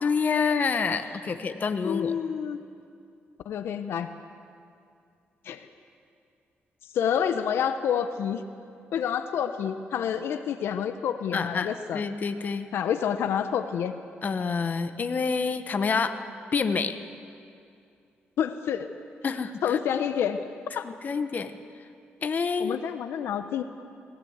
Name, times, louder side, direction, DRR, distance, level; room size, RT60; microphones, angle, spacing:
voice 1, 0.0-2.1 11.3-12.7 14.2-16.2 16.5-17.0 19.2-19.8 20.8-21.5 22.2-22.8, left 5 dB, 45° left, 9 dB, 1.1 m, -27 dB
voice 2, 1.8-2.6 3.4-4.1 5.5-5.7 6.9-8.4 8.9-12.0 12.7-13.9 18.4-18.9 19.6-20.4 20.7-20.9 22.6-23.6, left 8 dB, 85° left, 9 dB, 0.8 m, -28 dB
19.5 x 16.5 x 8.1 m, 2.4 s
cardioid pair, 95°, 4 cm